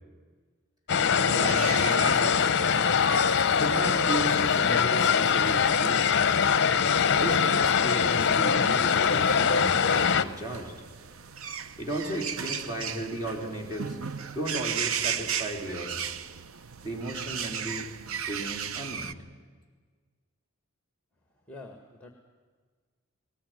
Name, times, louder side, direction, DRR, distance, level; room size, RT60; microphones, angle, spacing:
sound 1, 0.9-10.2, left 6 dB, 55° left, 0.7 m, -23 dB
voice 1, 1.2-2.7 3.6-6.3 7.2-10.7 11.8-14.0 14.3-16.1 16.8-17.9 18.3-19.1, right 1 dB, 20° right, 1 dB, 3.8 m, -35 dB
sound 2, 1.5-19.1, right 7 dB, 70° right, 0.7 m, -37 dB
voice 2, 21.5-22.1, left 2 dB, 5° left, 4 dB, 1.6 m, -45 dB
19.5 x 19.0 x 9.4 m, 1.5 s
head